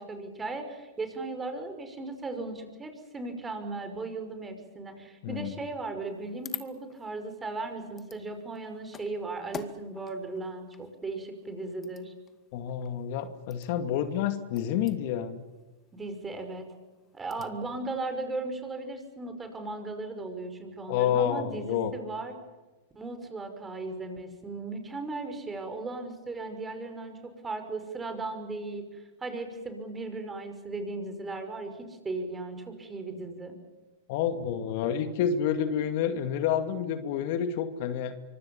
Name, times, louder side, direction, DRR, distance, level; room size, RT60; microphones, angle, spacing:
voice 1, 0.0-12.1 15.9-16.7 17.1-22.4 22.9-33.6, right 3 dB, 15° right, 7 dB, 5.9 m, -37 dB
voice 2, 5.2-5.5 12.5-15.4 20.9-21.9 34.1-38.1, left 9 dB, 55° left, 8 dB, 2.4 m, -29 dB
sound 1, 6.0-17.7, left 7 dB, 25° left, 2.2 m, -48 dB
25.0 x 25.0 x 7.3 m, 1.2 s
hypercardioid pair, 125°, 0 cm